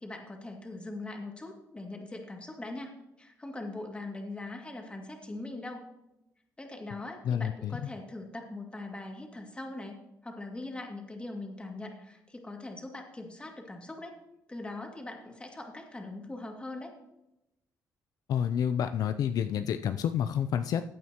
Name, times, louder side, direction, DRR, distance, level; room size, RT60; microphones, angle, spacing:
voice 1, 0.0-5.8 6.6-14.1 14.5-16.9, left 2 dB, 15° left, 1 dB, 2.3 m, -41 dB
voice 2, 7.2-7.8 18.3-20.8, left 9 dB, 65° left, 9 dB, 0.5 m, -29 dB
15.0 x 9.1 x 3.0 m, 0.91 s
cardioid pair, 95°, 7 cm